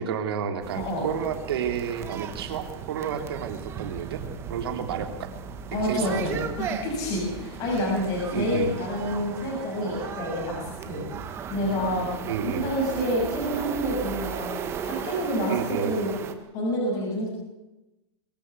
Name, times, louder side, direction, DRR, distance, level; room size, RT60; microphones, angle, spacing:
voice 1, 0.0-4.2 4.5-5.3 5.7-6.5 8.3-8.7 12.3-12.7 15.5-16.0, right 8 dB, 60° right, 6 dB, 3.2 m, -31 dB
sound 1, 0.6-16.3, right 7 dB, 15° right, 1.3 m, -36 dB
voice 2, 0.7-1.1 5.7-11.0 11.5-12.1 12.4-14.5 14.8-16.1 16.5-17.3, equal, 25° left, -3 dB, 6.7 m, -28 dB
23.0 x 15.0 x 8.3 m, 0.98 s
supercardioid pair, 165°, 14 cm